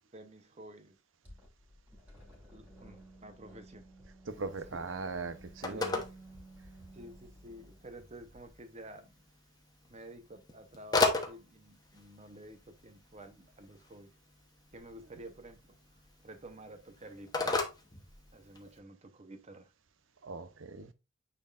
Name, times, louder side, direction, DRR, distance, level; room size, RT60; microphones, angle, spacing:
voice 1, 0.1-0.9 2.5-3.8 4.4-4.9 5.7-6.0 6.9-9.1 9.9-14.1 14.7-15.8 16.2-17.7 18.3-19.7, right 1 dB, 35° right, 0.9 m, -51 dB
sound 1, 1.2-8.6, right 1 dB, 10° right, 3.0 m, -55 dB
Telephone, 4.3-18.8, left 3 dB, 20° left, 1.0 m, -38 dB
voice 2, 4.3-6.0 20.2-20.9, right 3 dB, 85° right, 0.8 m, -39 dB
8.8 x 4.5 x 2.5 m
head